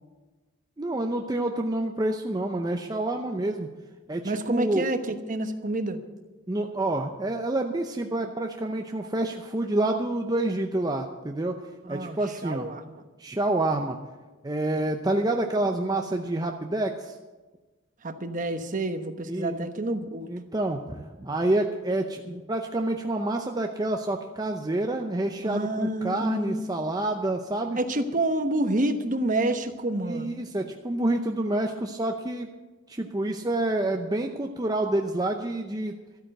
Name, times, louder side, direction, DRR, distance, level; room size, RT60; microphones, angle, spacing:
voice 1, 0.8-3.7 4.1-4.9 6.5-11.6 11.9-12.7 13.2-14.0 14.4-17.2 19.3-19.7 20.3-27.8 30.1-32.5 32.9-36.0, right 2 dB, 20° right, 3 dB, 0.6 m, -28 dB
voice 2, 4.2-6.0 11.8-12.9 18.0-20.3 25.4-26.8 27.8-30.4, right 1 dB, 40° right, 8 dB, 1.0 m, -28 dB
13.0 x 8.8 x 7.8 m, 1.2 s
head